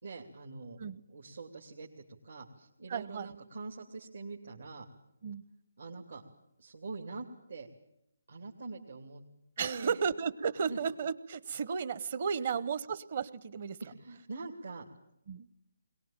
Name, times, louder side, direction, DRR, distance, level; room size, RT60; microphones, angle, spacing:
voice 1, 0.0-0.8 1.1-4.9 5.8-6.2 6.6-7.7 8.3-9.2 9.6-10.0 10.7-10.8 12.3-12.6 13.8-14.9, right 3 dB, 80° right, -1 dB, 2.9 m, -44 dB
voice 2, 2.9-3.4 5.2-5.4 9.6-13.8 15.3-15.5, right 6 dB, 45° right, 17 dB, 1.0 m, -34 dB
22.0 x 19.0 x 9.0 m, 0.79 s
hypercardioid pair, 155°, 0 cm